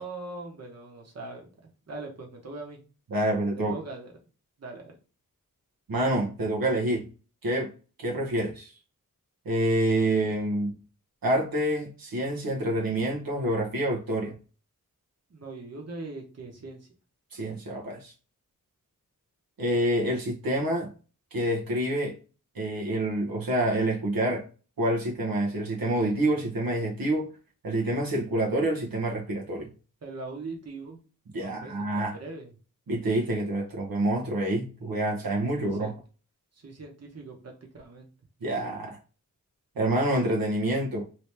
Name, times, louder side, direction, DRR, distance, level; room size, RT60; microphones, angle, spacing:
voice 1, 0.0-2.8 3.6-4.1 4.6-4.9 15.3-16.9 30.0-31.0 31.4-32.5 35.6-36.0 36.5-38.1, right 3 dB, 50° right, 1.1 m, -41 dB
voice 2, 3.1-3.7 5.9-7.0 7.4-7.7 8.0-8.7 9.4-10.7 11.2-14.4 17.3-18.1 19.6-20.9 21.3-22.2 22.5-24.4 24.8-27.3 27.6-29.7 31.3-32.2 32.9-35.9 38.4-39.0 39.8-41.0, right 1 dB, 85° right, 0.9 m, -27 dB
3.0 x 2.8 x 3.3 m
wide cardioid pair, 75°, 34 cm